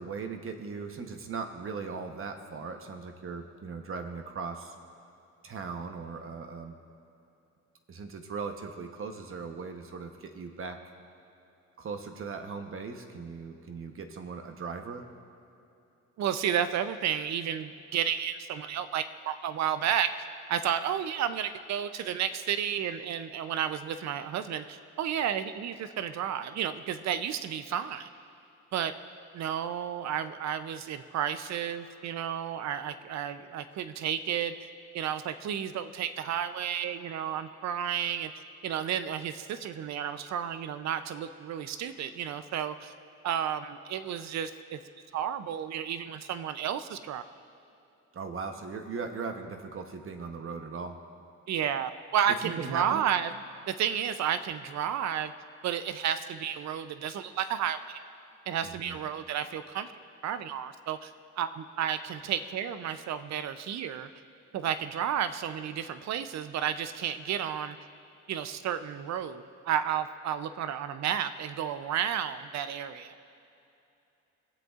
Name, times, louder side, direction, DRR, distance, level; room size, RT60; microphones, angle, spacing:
voice 1, 0.0-4.7 5.4-6.7 7.9-10.8 11.8-15.1 48.1-51.0 52.4-53.0 58.6-59.0, right 5 dB, 45° right, 6 dB, 1.0 m, -38 dB
voice 2, 16.2-20.2 20.5-28.1 28.7-29.0 29.3-34.6 34.9-38.3 38.6-42.9 43.2-44.8 45.1-47.2 51.5-53.3 53.7-55.3 55.6-58.0 58.5-59.9 60.2-64.1 64.5-67.8 68.3-73.1, right 9 dB, 65° right, 12 dB, 0.6 m, -32 dB
22.5 x 7.8 x 2.5 m, 2.8 s
cardioid pair, 90°, 30 cm